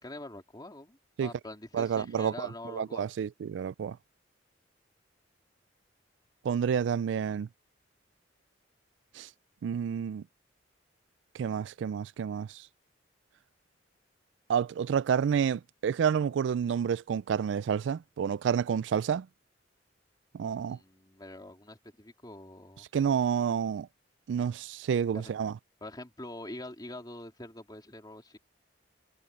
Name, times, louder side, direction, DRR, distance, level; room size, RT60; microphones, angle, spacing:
voice 1, 0.0-3.1 20.7-22.9 25.1-25.4 25.8-28.4, left 1 dB, 20° left, 3.5 m, -45 dB
voice 2, 1.7-4.0 6.4-7.5 9.2-9.3 9.6-10.2 11.3-12.6 14.5-19.3 20.3-20.8 22.9-23.9 24.3-25.5, right 7 dB, 75° right, 0.3 m, -29 dB
head